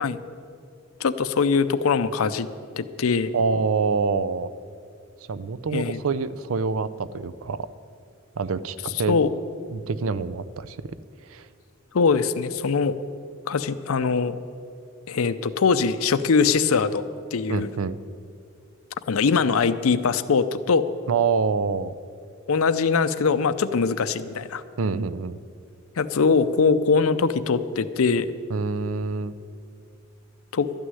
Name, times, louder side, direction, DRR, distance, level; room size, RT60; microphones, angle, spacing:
voice 1, 1.0-2.5 2.8-3.3 5.7-6.0 9.1-9.3 11.9-12.9 13.5-14.3 15.1-17.0 17.3-17.7 19.1-20.9 22.5-24.6 26.0-28.3 30.5-30.7, left 5 dB, 75° left, 13 dB, 0.5 m, -22 dB
voice 2, 3.3-4.5 5.3-7.7 8.4-9.2 9.7-10.8 11.2-11.5 17.5-18.0 21.1-21.9 24.8-25.4 28.5-29.4, right 5 dB, 70° right, 15 dB, 0.5 m, -26 dB
12.5 x 6.3 x 9.6 m, 2.4 s
head